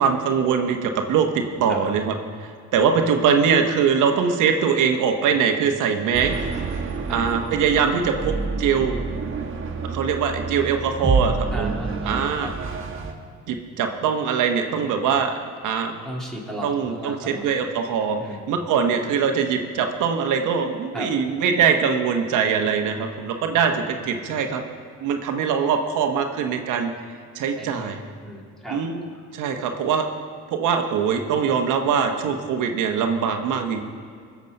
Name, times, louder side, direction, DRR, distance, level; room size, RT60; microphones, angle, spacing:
voice 1, 0.0-6.3 7.1-9.0 9.9-11.7 12.1-12.5 13.5-15.3 15.6-15.9 16.6-18.2 18.5-24.6 25.0-26.9 27.3-28.0 28.7-29.0 29.3-30.0 30.5-33.8, right 6 dB, 90° right, 4 dB, 1.1 m, -22 dB
sound 1, 6.1-13.1, right 4 dB, 40° right, 1.8 m, -28 dB
voice 2, 11.5-12.5 16.0-17.5 18.2-18.5 20.9-21.1 27.6-28.8, right 1 dB, ahead, -3 dB, 3.1 m, -35 dB
20.0 x 7.3 x 5.3 m, 2.2 s
cardioid pair, 90°, 30 cm